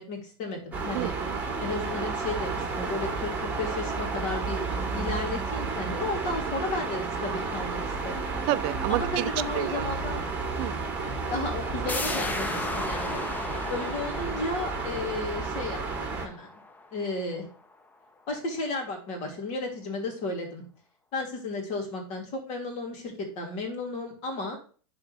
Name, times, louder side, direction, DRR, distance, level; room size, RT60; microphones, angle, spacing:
voice 1, 0.0-1.1 1.6-3.3 3.6-4.7 4.9-8.3 8.9-10.2 11.3-13.2 13.7-16.5 16.9-17.4 18.3-20.6 21.1-24.6, left 2 dB, 50° left, 3.2 m, -33 dB
sound 1, 0.7-16.3, right 4 dB, 10° right, 2.6 m, -32 dB
voice 2, 0.9-1.4 8.5-9.3 9.5-9.9 10.6-10.9, right 17 dB, 45° right, 0.3 m, -29 dB
sound 2, 11.9-17.4 17.7-17.8, left 2 dB, 10° left, 0.8 m, -36 dB
11.0 x 4.3 x 3.4 m
hypercardioid pair, 115°, 14 cm